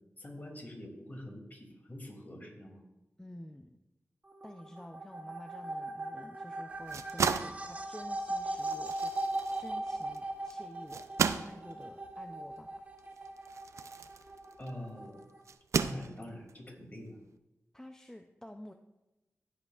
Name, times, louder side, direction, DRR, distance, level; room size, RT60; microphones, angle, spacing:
voice 1, 0.2-2.8 14.6-15.1 15.8-17.2, left 1 dB, 35° left, 0 dB, 2.9 m, -45 dB
voice 2, 3.2-3.8 4.4-11.1 11.4-12.8 17.7-18.7, left 1 dB, 10° left, 5 dB, 0.6 m, -50 dB
sound 1, 4.3-15.5, right 2 dB, 30° right, 1.0 m, -39 dB
sound 2, 6.7-14.8 15.5-16.5, right 6 dB, 85° right, 0.4 m, -36 dB
15.5 x 8.3 x 2.5 m, 0.99 s
cardioid pair, 60°, 5 cm